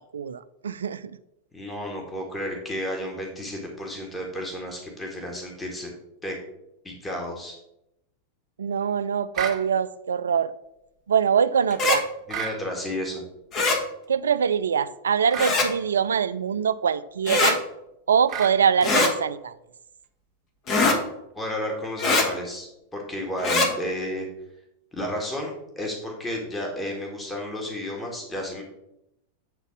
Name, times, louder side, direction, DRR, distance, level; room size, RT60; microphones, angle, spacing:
voice 1, 0.1-1.1 8.6-10.5 11.1-12.0 14.1-17.6 18.1-19.5, right 7 dB, 70° right, 15 dB, 0.3 m, -23 dB
voice 2, 1.5-5.9 6.2-6.4 6.8-7.5 12.3-13.2 21.3-24.3 24.9-28.6, left 1 dB, 10° left, 0 dB, 1.8 m, -32 dB
sound 1, 9.3-9.6 12.3-12.6 15.3-15.6 18.3-18.6, right 8 dB, 30° right, 1.4 m, -31 dB
sound 2, 11.7-12.0 13.5-13.8 15.4-15.7 17.3-17.6 18.8-19.1 20.7-21.0 22.0-22.3 23.4-23.7, left 3 dB, 30° left, 1.5 m, -21 dB
8.3 x 4.0 x 5.8 m, 0.84 s
figure-of-eight pair, 90°, 0 cm